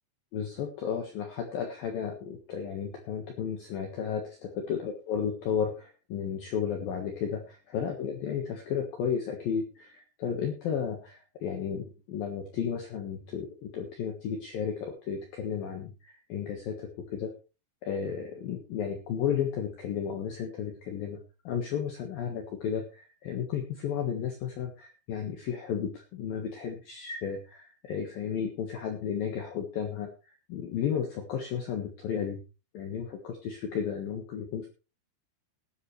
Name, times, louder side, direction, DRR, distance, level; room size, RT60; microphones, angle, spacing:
voice 1, 0.3-17.3 17.8-21.2 21.4-30.1 30.5-32.4 32.7-34.7, left 7 dB, 60° left, 3 dB, 2.6 m, -33 dB
18.5 x 10.0 x 3.3 m, 0.31 s
omnidirectional pair, 5.8 m